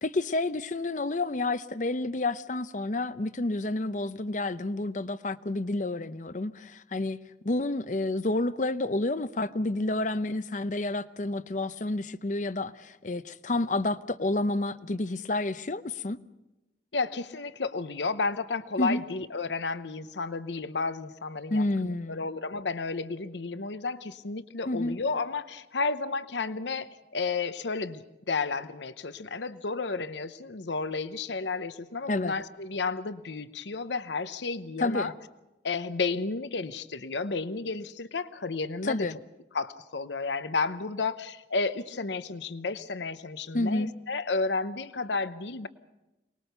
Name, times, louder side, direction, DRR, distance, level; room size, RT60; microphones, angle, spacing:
voice 1, 0.0-7.2 7.4-16.2 18.8-19.0 21.5-22.2 24.7-25.0 32.1-32.3 34.8-35.1 38.8-39.2 43.5-43.9, left 2 dB, 45° left, 14 dB, 0.7 m, -29 dB
voice 2, 16.9-35.1 35.6-39.1 39.5-45.7, left 4 dB, 75° left, 13 dB, 0.9 m, -32 dB
24.0 x 20.0 x 6.8 m, 0.99 s
head